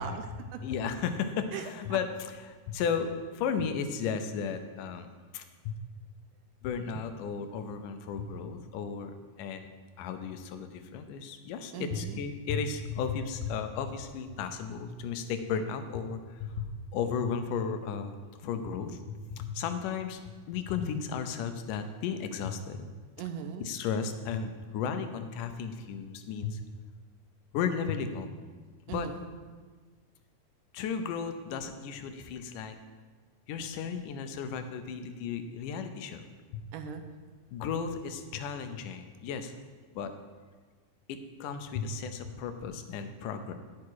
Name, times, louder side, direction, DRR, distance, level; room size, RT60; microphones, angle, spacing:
voice 1, 0.0-0.6 1.5-2.0 11.7-12.2 23.2-23.7 28.9-29.2 36.7-37.0, right 7 dB, 90° right, 8 dB, 2.3 m, -39 dB
voice 2, 0.6-5.8 6.6-9.7 10.0-20.2 20.5-22.9 23.6-26.6 27.5-28.3 28.9-29.1 30.7-32.8 33.5-36.2 36.5-36.6 37.5-39.5 39.9-40.1 41.1-43.5, left 6 dB, 90° left, 8 dB, 2.4 m, -34 dB
9.7 x 9.6 x 4.7 m, 1.4 s
omnidirectional pair, 3.6 m